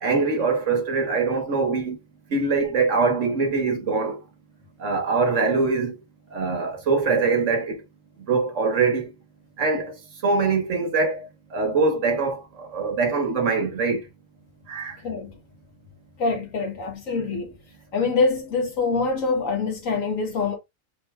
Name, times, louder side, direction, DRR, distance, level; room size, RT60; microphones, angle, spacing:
voice 1, 0.0-2.0 2.3-4.2 4.8-6.0 6.3-7.8 8.3-9.1 9.6-14.1 14.7-15.0, right 4 dB, 65° right, 1.6 m, -23 dB
voice 2, 16.2-17.5 17.9-20.6, left 4 dB, 80° left, 1.9 m, -25 dB
4.3 x 3.5 x 3.2 m
omnidirectional pair, 1.4 m